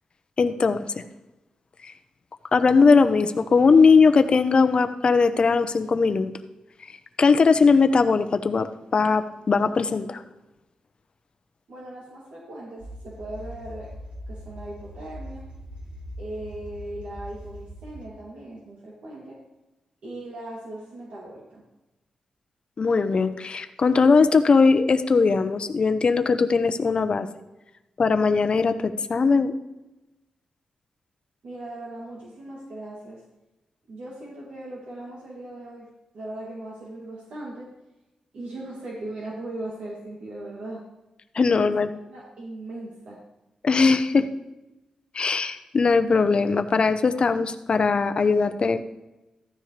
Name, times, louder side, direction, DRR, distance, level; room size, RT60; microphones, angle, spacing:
voice 1, 0.4-0.9 2.5-6.3 7.2-8.7 8.9-10.2 22.8-27.3 28.0-29.5 41.3-41.9 43.6-44.3 45.1-48.8, left 4 dB, 50° left, 9 dB, 0.9 m, -19 dB
voice 2, 11.7-13.9 14.3-15.5 16.2-19.4 20.0-21.6 31.4-33.2 33.9-35.9 36.1-37.7 38.3-40.9 41.5-41.7 42.1-43.2, right 1 dB, 75° right, -4 dB, 2.7 m, -38 dB
sound 1, 12.8-18.1, equal, 50° right, 3.1 m, -41 dB
14.5 x 13.0 x 3.4 m, 1.0 s
cardioid pair, 70°, 2 cm